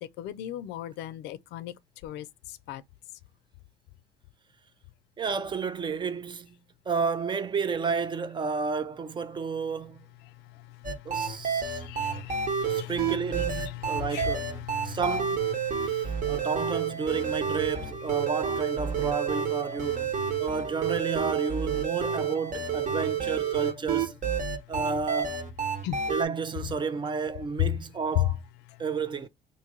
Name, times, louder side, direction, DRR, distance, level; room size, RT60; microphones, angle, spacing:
voice 1, 0.2-1.7 2.0-2.8 11.1-15.0 15.6-16.5 25.8-26.0 28.1-28.2, left 15 dB, 85° left, 0.4 m, -36 dB
voice 2, 5.2-6.5 6.9-10.0 11.1-11.8 12.6-14.6 14.8-15.5 15.8-20.1 20.4-24.2 24.7-25.4 26.1-28.4 28.8-29.3, right 5 dB, 30° right, 0.4 m, -31 dB
sound 1, 10.8-26.3, right 7 dB, 50° right, 1.1 m, -29 dB
3.0 x 2.6 x 3.7 m
cardioid pair, 110°, 17 cm